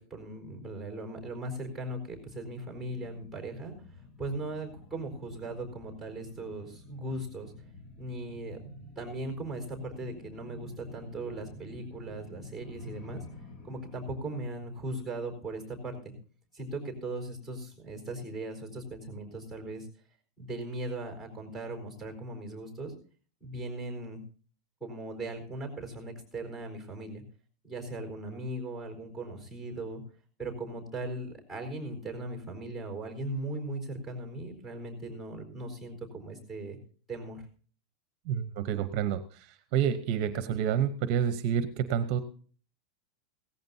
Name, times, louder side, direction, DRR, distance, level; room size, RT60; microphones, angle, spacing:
voice 1, 0.0-3.7 4.2-7.5 8.0-8.7 9.0-13.2 13.6-16.1 16.5-19.9 20.4-22.9 23.4-24.2 24.8-27.2 27.6-30.0 30.4-36.8 37.1-37.4, right 2 dB, 5° left, 2 dB, 4.3 m, -38 dB
sound 1, 2.7-15.8 16.1-16.2, left 2 dB, 65° left, 3.0 m, -50 dB
voice 2, 38.2-42.2, right 9 dB, 45° right, 11 dB, 0.8 m, -29 dB
17.0 x 14.5 x 2.7 m, 0.42 s
supercardioid pair, 160°, 3 cm